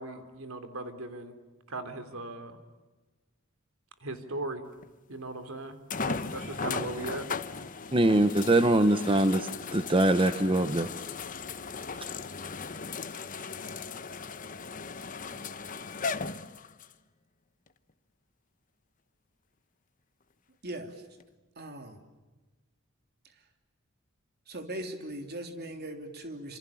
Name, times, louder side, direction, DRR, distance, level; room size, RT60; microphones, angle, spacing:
voice 1, 0.0-1.3 1.7-2.6 4.0-4.7 5.1-7.3, right 2 dB, 80° right, 9 dB, 3.3 m, -38 dB
sound 1, 4.8-4.9 5.9-16.9 17.7-17.8 21.2-21.3, left 4 dB, 40° left, 1.1 m, -37 dB
voice 2, 7.9-10.9, right 1 dB, 25° right, 9 dB, 1.1 m, -23 dB
voice 3, 20.6-21.0 21.6-22.0 24.5-26.6, right 1 dB, 50° right, 6 dB, 3.3 m, -39 dB
28.5 x 27.0 x 7.2 m, 1.2 s
head